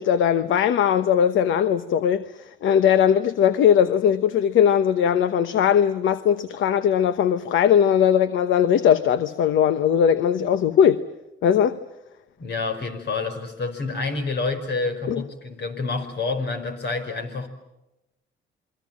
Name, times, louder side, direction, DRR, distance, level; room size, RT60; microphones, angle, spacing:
voice 1, 0.0-11.0 11.4-11.8 15.1-15.2, left 8 dB, 75° left, 1.0 m, -19 dB
voice 2, 12.4-17.5, left 3 dB, 60° left, 5.1 m, -28 dB
28.5 x 23.0 x 7.5 m
cardioid pair, 90°, 20 cm